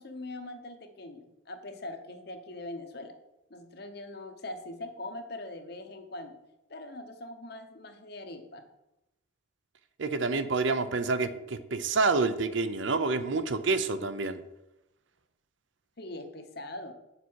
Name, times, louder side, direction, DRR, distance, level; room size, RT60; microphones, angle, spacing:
voice 1, 0.0-3.2 3.5-6.4 6.7-8.6 16.0-16.9, left 2 dB, 50° left, 7 dB, 1.0 m, -42 dB
voice 2, 10.0-14.4, right 3 dB, 65° right, 11 dB, 0.6 m, -28 dB
8.2 x 6.7 x 4.7 m, 0.91 s
head